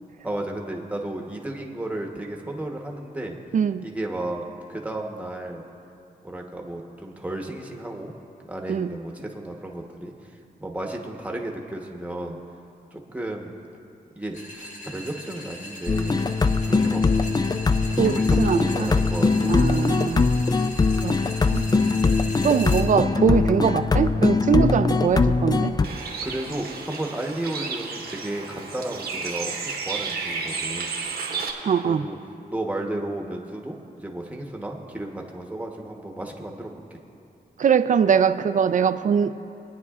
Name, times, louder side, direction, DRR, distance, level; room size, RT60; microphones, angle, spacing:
voice 1, 0.2-3.4 3.8-4.4 4.7-5.6 6.2-8.1 8.5-10.1 10.6-12.4 12.9-13.6 14.1-16.2 16.6-17.0 18.0-20.0 26.2-30.9 31.8-32.2 32.5-37.0, right 1 dB, 10° right, 1 dB, 1.0 m, -33 dB
voice 2, 3.5-3.9 8.7-8.9 18.0-18.9 19.4-20.2 21.0-21.2 21.5-21.7 22.4-25.8 31.6-32.1 37.6-39.3, right 7 dB, 55° right, 11 dB, 0.4 m, -22 dB
sound 1, 14.3-22.8, left 1 dB, 55° left, 1.4 m, -39 dB
sound 2, 15.9-25.9, left 4 dB, 25° left, 0.3 m, -21 dB
Bird, 25.8-31.5, right 5 dB, 85° right, 1.2 m, -32 dB
22.0 x 9.3 x 2.4 m, 2.7 s
wide cardioid pair, 95°, 16 cm